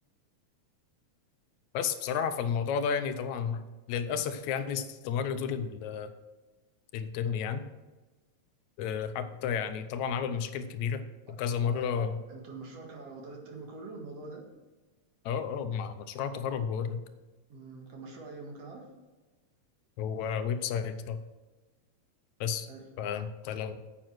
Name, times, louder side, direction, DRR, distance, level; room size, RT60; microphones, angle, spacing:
voice 1, 1.7-6.1 6.9-7.6 8.8-12.2 15.3-17.0 20.0-21.2 22.4-22.7 23.0-23.8, left 7 dB, 80° left, 10 dB, 2.1 m, -32 dB
voice 2, 12.3-14.5 17.5-18.9 22.7-22.9, right 3 dB, 60° right, 2 dB, 2.7 m, -44 dB
9.3 x 7.6 x 6.0 m, 1.2 s
omnidirectional pair, 3.3 m